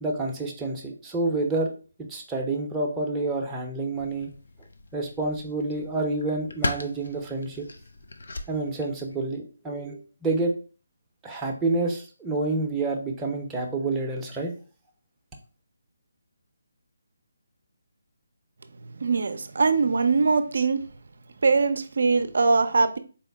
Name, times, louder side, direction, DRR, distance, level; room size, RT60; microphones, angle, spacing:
voice 1, 0.0-1.7 2.0-4.3 4.9-7.7 8.5-10.5 11.2-14.5, right 2 dB, 10° right, 0.6 m, -28 dB
sound 1, 3.9-9.3, left 2 dB, 70° left, 0.5 m, -37 dB
voice 2, 19.0-20.8 21.4-23.0, right 4 dB, 65° right, 0.4 m, -22 dB
4.0 x 2.1 x 3.3 m
figure-of-eight pair, 155°, 0 cm